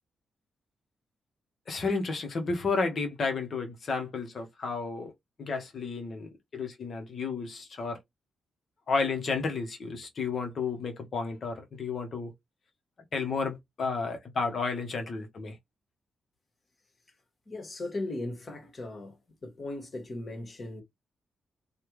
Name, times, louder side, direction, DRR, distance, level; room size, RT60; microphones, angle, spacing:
voice 1, 1.7-5.1 5.4-8.0 8.9-12.3 13.1-15.6, left 4 dB, 60° left, 1.1 m, -32 dB
voice 2, 17.5-19.2 19.4-20.8, left 2 dB, 45° left, 1.6 m, -37 dB
3.3 x 2.4 x 3.0 m
cardioid pair, 60°, 0 cm